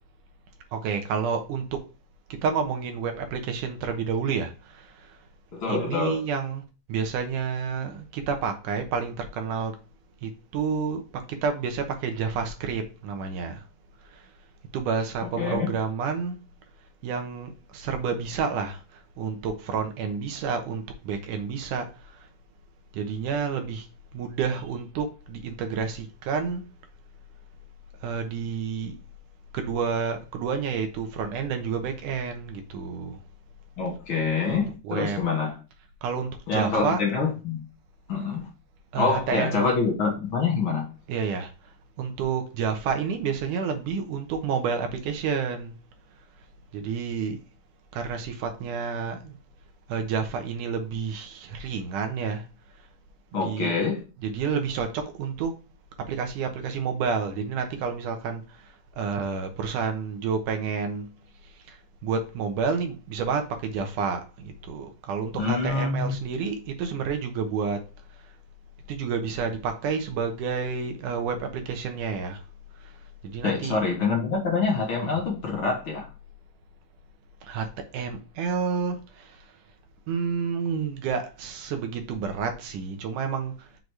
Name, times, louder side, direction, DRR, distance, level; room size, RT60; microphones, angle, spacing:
voice 1, 0.7-1.8 2.3-5.2 5.7-6.6 6.9-9.8 10.2-13.6 14.1-14.2 14.7-16.4 17.0-18.8 19.2-22.2 22.9-23.9 24.1-26.6 28.0-29.0 29.5-33.2 34.5-35.2 36.0-37.0 38.9-39.7 41.1-41.5 42.0-45.7 46.7-47.4 47.9-49.4 49.9-52.5 53.3-53.8 54.2-55.6 56.1-58.6 59.0-61.1 61.7-61.8 62.0-67.8 68.9-72.4 73.2-73.8 75.0-75.2 77.5-79.4 80.1-83.7, right 6 dB, 85° right, 2.6 m, -29 dB
voice 2, 5.5-6.2 15.4-15.7 33.8-35.5 36.5-37.6 38.1-38.5 39.0-40.9 53.3-54.0 65.4-66.1 73.4-76.1, left 4 dB, 50° left, 2.0 m, -26 dB
6.6 x 4.1 x 4.7 m
omnidirectional pair, 3.6 m